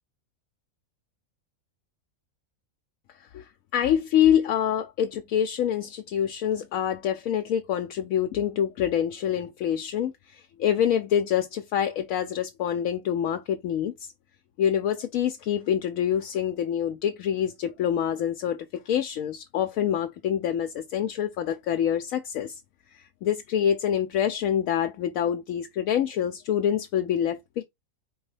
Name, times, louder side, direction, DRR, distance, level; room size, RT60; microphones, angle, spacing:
voice 1, 3.2-14.1 14.6-22.6 22.9-27.6, left 9 dB, 75° left, 1.0 m, -26 dB
4.7 x 3.1 x 3.2 m
omnidirectional pair, 1.5 m